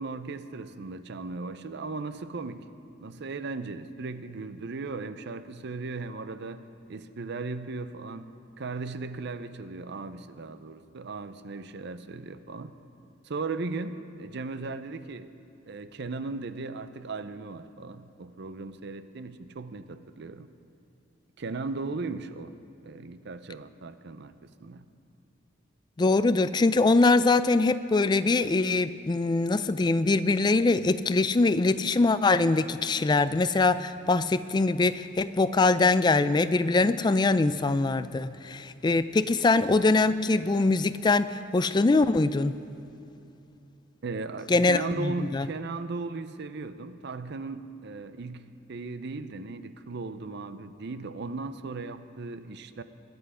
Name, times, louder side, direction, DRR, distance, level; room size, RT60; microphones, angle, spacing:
voice 1, 0.0-2.6 3.0-8.3 8.6-12.7 13.2-15.3 15.7-20.5 21.4-22.5 22.8-24.3 24.6-24.8 44.0-52.8, right 3 dB, 55° right, 12 dB, 0.6 m, -37 dB
voice 2, 26.0-42.6 44.5-45.5, left 3 dB, 20° left, 13 dB, 0.3 m, -23 dB
22.5 x 8.0 x 4.9 m, 2.7 s
head